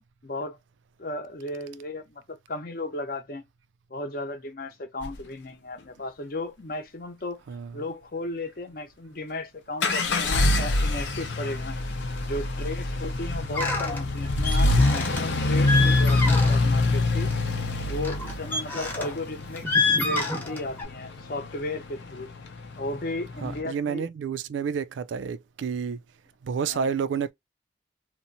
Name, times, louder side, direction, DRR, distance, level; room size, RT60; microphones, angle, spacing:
voice 1, 0.2-0.6 1.0-3.4 3.9-7.4 7.7-11.8 12.2-17.3 17.9-19.7 20.0-22.3 22.8-24.0 26.7-26.9, left 2 dB, 50° left, 0.7 m, -35 dB
sound 1, 5.0-5.2 9.8-23.6, left 2 dB, 85° left, 0.6 m, -26 dB
sound 2, 13.5-14.0 14.4-15.2 15.5-16.7 17.1-17.3 18.0-19.2 19.6-20.8, left 3 dB, 10° left, 0.7 m, -27 dB
voice 2, 23.4-26.0 26.4-27.3, right 6 dB, 90° right, 0.3 m, -30 dB
2.9 x 2.0 x 2.6 m
head